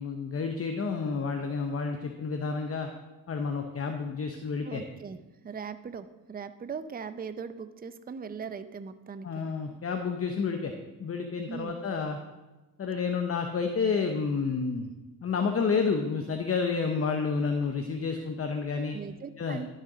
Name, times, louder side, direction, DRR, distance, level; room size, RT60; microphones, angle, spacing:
voice 1, 0.0-2.9 3.3-4.8 9.2-10.7 11.0-12.2 12.8-14.9 15.2-19.0 19.4-19.6, left 5 dB, 40° left, 5 dB, 0.8 m, -30 dB
voice 2, 4.6-5.2 5.4-9.5 11.5-11.8 18.9-19.7, right 6 dB, 25° right, 11 dB, 0.5 m, -40 dB
11.5 x 6.4 x 3.9 m, 1.1 s
cardioid pair, 75°, 38 cm